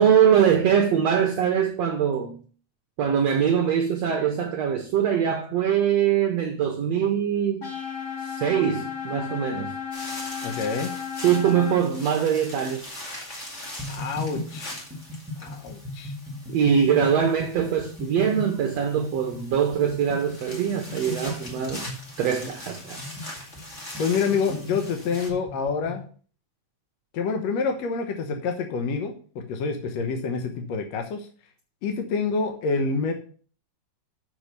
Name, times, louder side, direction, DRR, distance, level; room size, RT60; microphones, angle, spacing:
voice 1, 0.0-2.4 3.0-7.6 8.2-9.7 11.1-13.0 16.5-21.8 22.2-23.1, right 8 dB, 75° right, 1.5 m, -23 dB
sound 1, 7.6-11.7, left 7 dB, 40° left, 4.1 m, -34 dB
sound 2, 9.9-25.3, left 1 dB, 25° left, 1.8 m, -42 dB
voice 2, 10.4-10.9 13.9-14.7 15.4-16.1 24.0-26.1 27.1-31.3 31.8-33.1, left 5 dB, 65° left, 1.7 m, -27 dB
sound 3, 13.8-26.0, left 1 dB, 5° right, 0.9 m, -37 dB
6.9 x 6.9 x 6.6 m
omnidirectional pair, 4.3 m